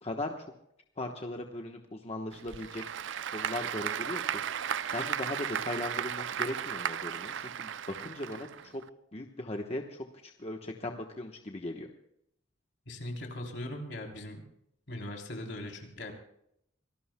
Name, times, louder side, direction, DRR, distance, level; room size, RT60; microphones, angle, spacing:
voice 1, 0.0-0.5 1.0-2.8 3.3-4.4 4.9-8.8 9.1-11.9, left 1 dB, 30° left, 3 dB, 1.1 m, -38 dB
Applause / Crowd, 2.3-8.9, right 8 dB, 65° right, 0.4 m, -35 dB
voice 2, 12.8-14.4 14.9-16.1, left 1 dB, 60° left, 1 dB, 3.4 m, -40 dB
26.0 x 18.5 x 2.2 m, 0.76 s
head